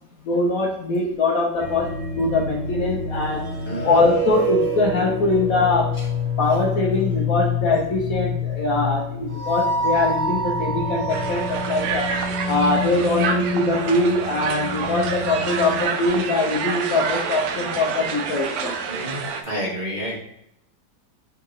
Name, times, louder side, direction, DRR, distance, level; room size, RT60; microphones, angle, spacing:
voice 1, 0.3-1.9 2.2-3.4 3.8-5.9 6.4-12.1 12.5-18.7, left 2 dB, 60° left, -2 dB, 1.0 m, -22 dB
sound 1, 1.6-15.8, left 1 dB, 70° right, 1.7 m, -27 dB
voice 2, 3.6-4.0 18.9-20.2, equal, 30° right, -6 dB, 0.9 m, -30 dB
Crowd, 11.1-19.4, right 6 dB, 85° right, 1.3 m, -28 dB
3.6 x 2.9 x 4.8 m, 0.78 s
omnidirectional pair, 2.0 m